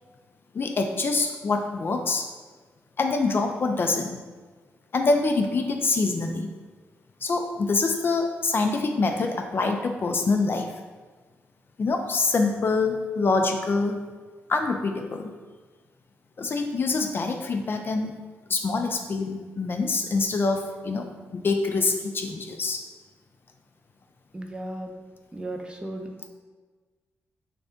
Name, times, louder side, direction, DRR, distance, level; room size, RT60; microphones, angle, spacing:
voice 1, 0.5-2.3 3.0-4.1 4.9-6.5 7.2-10.7 11.8-14.0 14.5-15.3 16.4-18.1 18.5-21.1 21.3-22.8, left 3 dB, 45° left, 4 dB, 0.4 m, -25 dB
voice 2, 24.3-24.9 25.3-26.1, right 1 dB, 20° right, 2 dB, 0.5 m, -35 dB
3.3 x 2.6 x 3.5 m, 1.3 s
cardioid pair, 70°, 5 cm